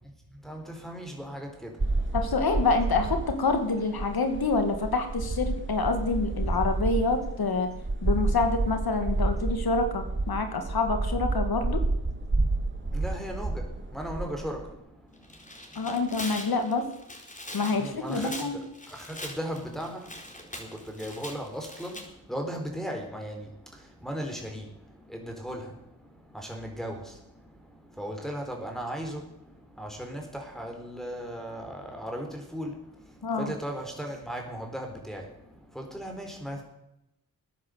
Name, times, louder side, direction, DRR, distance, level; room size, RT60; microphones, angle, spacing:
voice 1, 0.0-2.2 12.8-16.0 17.7-36.6, equal, ahead, 1 dB, 4.1 m, -38 dB
sound 1, 1.8-14.7, right 2 dB, 30° right, 2.1 m, -30 dB
voice 2, 2.1-7.7 8.0-11.8 15.8-16.9 17.5-18.6 33.2-33.5, left 3 dB, 70° left, 7 dB, 2.1 m, -27 dB
Tearing, 15.2-22.0, left 1 dB, 20° left, 4.3 m, -42 dB
14.0 x 9.9 x 8.0 m, 0.84 s
cardioid pair, 45°, 38 cm